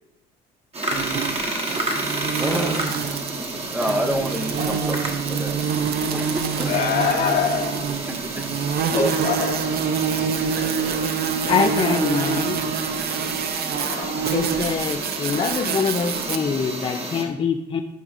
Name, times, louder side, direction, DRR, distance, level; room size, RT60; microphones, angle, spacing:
sound 1, 0.7-17.2, right 1 dB, 30° right, 1.4 m, -31 dB
sound 2, 0.9-16.4, right 7 dB, 50° right, 0.6 m, -27 dB
sound 3, 1.5-11.4, right 2 dB, 90° right, 1.4 m, -42 dB
voice 1, 2.4-5.6 6.1-6.8 8.1-8.5 8.9-9.2 11.4-11.5, right 1 dB, 10° right, 5 dB, 0.8 m, -29 dB
voice 2, 6.6-7.6 8.9-9.8 10.5-12.6 13.8-14.1, left 6 dB, 85° left, -4 dB, 2.1 m, -27 dB
voice 3, 11.5-12.6 14.3-17.8, left 5 dB, 25° left, 5 dB, 0.5 m, -24 dB
12.0 x 4.8 x 2.6 m, 0.87 s
supercardioid pair, 95°, 20 cm